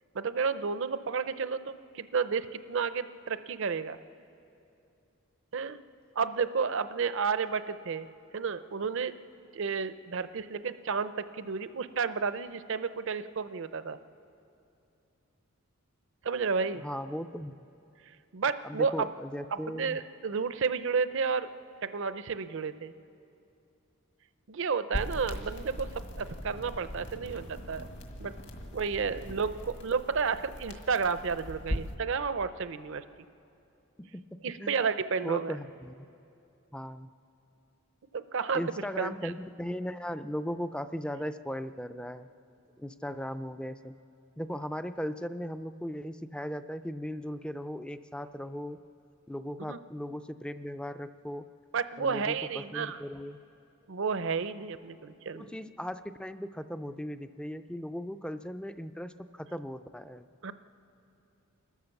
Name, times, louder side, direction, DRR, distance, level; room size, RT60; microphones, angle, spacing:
voice 1, 0.1-4.0 5.5-5.8 6.2-8.1 8.3-9.2 9.5-14.0 16.2-16.8 18.3-19.1 19.5-21.5 21.8-22.9 24.5-27.8 28.2-28.3 28.7-33.0 34.4-35.5 38.1-38.6 39.0-39.3 49.7-49.8 51.7-53.0 53.9-55.6 60.4-60.5, right 5 dB, 60° right, 13 dB, 0.6 m, -31 dB
voice 2, 16.8-17.5 18.6-20.0 34.0-34.2 34.6-34.7 35.2-36.1 36.7-37.1 38.5-42.3 42.8-43.9 44.4-48.8 49.3-51.5 52.0-53.4 55.3-60.2, equal, 5° left, 11 dB, 0.4 m, -37 dB
sound 1, 24.9-32.0, equal, 55° left, 1.8 m, -40 dB
29.5 x 13.0 x 7.1 m, 2.7 s
head